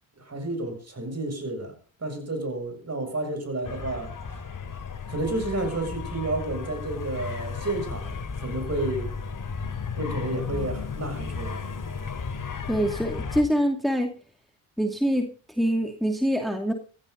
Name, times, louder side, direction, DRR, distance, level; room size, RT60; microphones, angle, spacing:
voice 1, 0.2-1.7 2.0-4.2 5.1-9.1 10.0-11.6, right 2 dB, 30° right, 7.5 m, -31 dB
sound 1, 3.6-13.4, left 5 dB, 40° left, 3.6 m, -34 dB
voice 2, 12.7-14.2 14.8-16.7, equal, ahead, 2.6 m, -25 dB
16.0 x 15.0 x 4.0 m
supercardioid pair, 70°, 49 cm